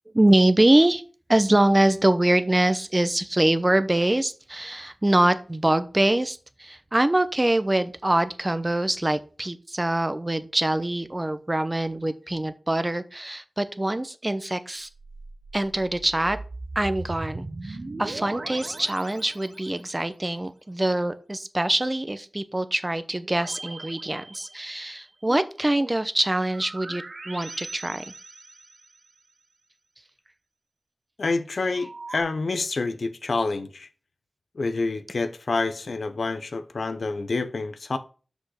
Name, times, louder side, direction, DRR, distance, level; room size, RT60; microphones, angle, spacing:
voice 1, 0.1-1.0 1.3-14.9 15.5-16.4 16.7-28.0, right 1 dB, 25° right, 0.8 m, -24 dB
sound 1, 14.8-19.9 23.2-25.0 26.5-29.1 31.7-32.2, right 2 dB, 60° right, 0.9 m, -39 dB
voice 2, 31.2-33.9 34.6-38.0, left 3 dB, 85° left, 0.7 m, -28 dB
6.3 x 5.2 x 6.4 m
wide cardioid pair, 65°, 0 cm